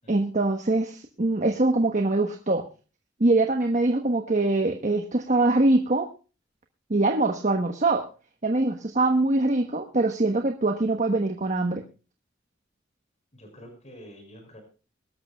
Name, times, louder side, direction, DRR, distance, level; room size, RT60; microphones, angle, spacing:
voice 1, 0.1-2.6 3.2-6.1 6.9-8.1 8.4-11.8, right 2 dB, 40° right, 5 dB, 1.2 m, -23 dB
voice 2, 13.3-14.6, equal, 35° left, 4 dB, 5.7 m, -47 dB
22.5 x 13.0 x 2.3 m, 0.34 s
head